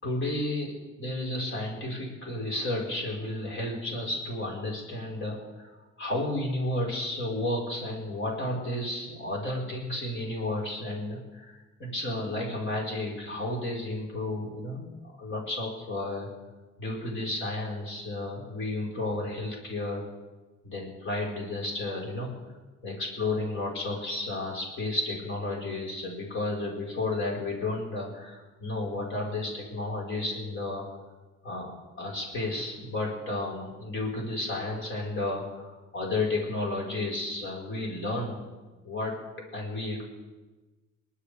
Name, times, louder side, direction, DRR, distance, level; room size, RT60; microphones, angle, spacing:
voice 1, 0.0-5.7 6.0-14.9 15.2-16.3 16.8-20.0 20.6-22.3 22.8-30.8 31.4-38.4 38.8-39.1 39.5-40.0, left 2 dB, 45° left, -2 dB, 4.7 m, -32 dB
28.5 x 11.5 x 3.5 m, 1.2 s
cardioid pair, 135°, 29 cm